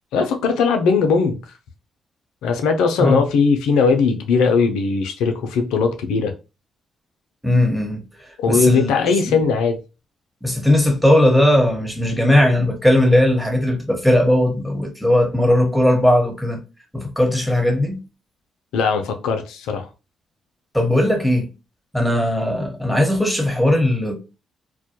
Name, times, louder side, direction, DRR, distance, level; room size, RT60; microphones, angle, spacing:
voice 1, 0.1-1.4 2.4-6.3 8.4-9.8 18.7-19.9, left 5 dB, 80° left, 0.4 m, -19 dB
voice 2, 7.4-8.0 8.5-9.4 10.4-16.6 16.9-18.0 20.7-21.5 21.9-24.2, left 1 dB, ahead, 0.9 m, -18 dB
2.2 x 2.1 x 2.8 m
supercardioid pair, 55°, 0 cm